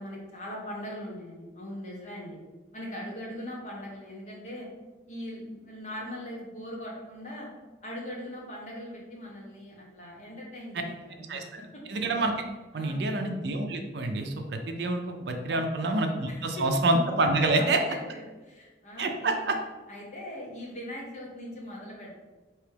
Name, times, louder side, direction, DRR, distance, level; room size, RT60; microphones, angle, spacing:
voice 1, 0.0-2.4 2.7-4.7 5.1-7.5 7.8-11.4 12.7-13.1 15.5-15.9 16.3-16.7 17.4-19.5 19.9-22.1, equal, 40° left, -3 dB, 1.0 m, -40 dB
voice 2, 11.9-12.3 12.7-17.8 19.0-19.6, right 2 dB, 60° right, 4 dB, 0.5 m, -27 dB
4.6 x 2.9 x 3.3 m, 1.2 s
head